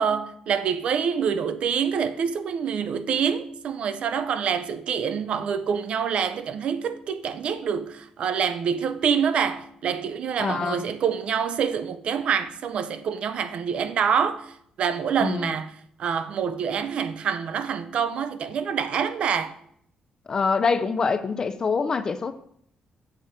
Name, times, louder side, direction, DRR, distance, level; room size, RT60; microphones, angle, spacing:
voice 1, 0.0-14.5 14.8-15.7 16.0-19.5, right 7 dB, 50° right, 0.5 m, -26 dB
voice 2, 10.4-10.8 15.2-15.6 20.3-22.3, left 5 dB, 25° left, 0.3 m, -25 dB
7.3 x 4.1 x 4.9 m
cardioid pair, 180°, 2 cm